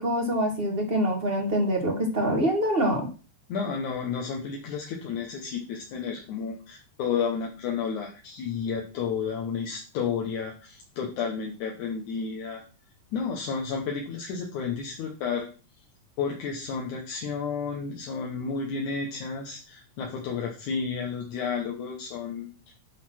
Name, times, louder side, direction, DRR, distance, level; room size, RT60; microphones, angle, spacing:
voice 1, 0.0-3.1, equal, 30° right, 2 dB, 1.0 m, -25 dB
voice 2, 3.5-12.6 13.1-15.5 16.2-22.5, left 6 dB, 75° left, 0 dB, 2.6 m, -31 dB
10.5 x 4.1 x 5.9 m, 0.35 s
omnidirectional pair, 3.6 m